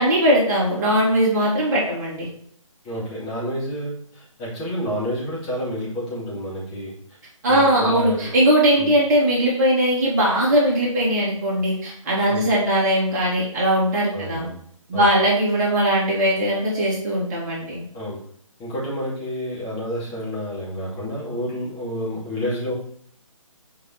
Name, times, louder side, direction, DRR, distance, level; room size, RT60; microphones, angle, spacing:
voice 1, 0.0-2.3 7.4-14.5 14.9-17.8, equal, 30° right, -4 dB, 2.5 m, -20 dB
voice 2, 2.8-7.2 7.5-8.3 8.8-8.9 12.3-12.5 14.1-14.5 14.9-15.1 17.9-18.2 18.6-22.7, equal, 20° left, -8 dB, 2.7 m, -29 dB
7.3 x 4.7 x 4.4 m, 0.65 s
figure-of-eight pair, 145°, 18 cm